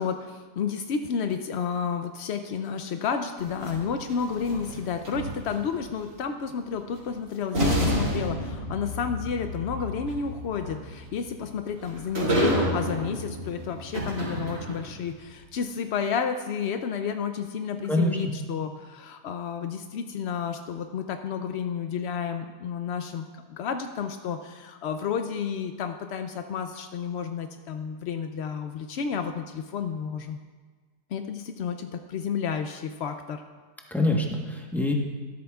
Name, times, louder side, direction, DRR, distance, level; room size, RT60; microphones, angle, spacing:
voice 1, 0.0-30.4 31.1-33.4, left 6 dB, 80° left, 7 dB, 0.6 m, -31 dB
sound 1, 3.4-5.8 7.0-7.1 7.5-15.0, equal, 55° right, 2.9 m, -30 dB
voice 2, 17.9-18.3 33.9-34.9, left 1 dB, ahead, 0 dB, 0.8 m, -25 dB
13.5 x 12.5 x 2.3 m, 1.4 s
omnidirectional pair, 1.7 m